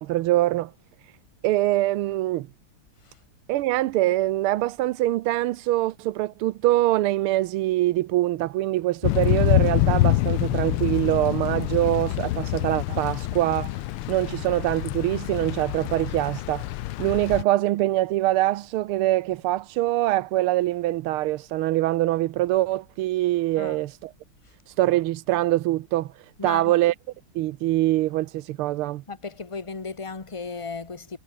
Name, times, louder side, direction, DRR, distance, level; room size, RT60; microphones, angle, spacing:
voice 1, 0.0-0.7 1.4-2.5 3.5-24.1 24.7-26.9 27.3-29.0, right 16 dB, 85° right, 1.5 m, -24 dB
Thunder / Rain, 9.0-17.4, left 17 dB, 85° left, 1.5 m, -26 dB
voice 2, 26.4-26.7 29.1-31.2, left 4 dB, 15° left, 1.5 m, -35 dB
omnidirectional pair, 2.4 m